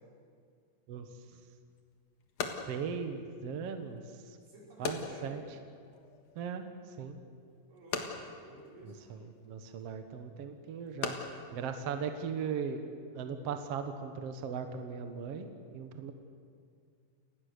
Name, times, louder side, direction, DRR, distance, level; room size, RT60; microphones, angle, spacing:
voice 1, 0.9-1.2 2.7-4.4 4.8-5.4 6.4-7.2 8.8-11.2 11.5-12.8 13.2-16.1, right 6 dB, 55° right, 7 dB, 2.0 m, -38 dB
sound 1, 1.3-12.7, left 6 dB, 55° left, 2.6 m, -43 dB
voice 2, 4.5-5.4 7.7-9.0, equal, 85° right, -4 dB, 7.2 m, -52 dB
29.5 x 19.0 x 6.7 m, 2.2 s
omnidirectional pair, 3.8 m